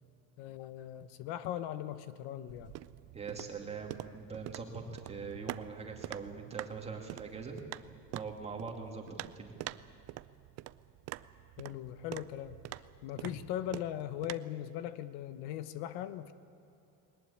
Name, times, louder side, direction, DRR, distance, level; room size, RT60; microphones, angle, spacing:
voice 1, 0.4-2.7 11.6-12.6 13.0-16.3, left 12 dB, 70° left, 13 dB, 1.1 m, -39 dB
sound 1, 2.5-14.3, right 16 dB, 40° right, 0.5 m, -46 dB
voice 2, 3.1-4.8 5.1-7.5 8.1-9.1 9.4-9.5 13.2-13.3, right 5 dB, 15° right, 2 dB, 2.3 m, -42 dB
21.0 x 19.5 x 8.7 m, 2.7 s
cardioid pair, 175°, 40 cm